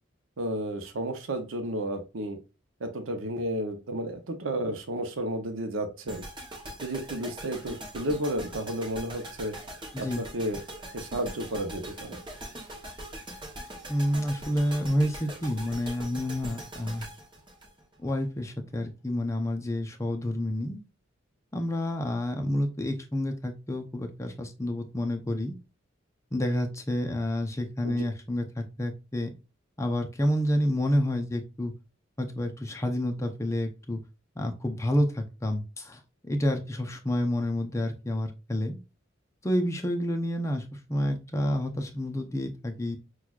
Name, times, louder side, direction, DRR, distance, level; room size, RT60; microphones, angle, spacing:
voice 1, 0.4-2.4 2.8-6.3 6.8-9.5 10.0-10.6 10.9-12.2 27.8-28.0, right 1 dB, 85° right, 6 dB, 0.7 m, -32 dB
sound 1, 6.1-18.3, right 1 dB, 25° right, 0.9 m, -42 dB
voice 2, 9.9-10.3 13.9-17.1 18.0-20.8 21.5-25.6 26.3-29.3 29.8-31.7 32.2-34.0 34.4-36.0 36.3-38.8 39.4-40.6 40.9-43.0, left 1 dB, 15° left, 4 dB, 0.6 m, -29 dB
6.1 x 2.4 x 2.3 m, 0.30 s
head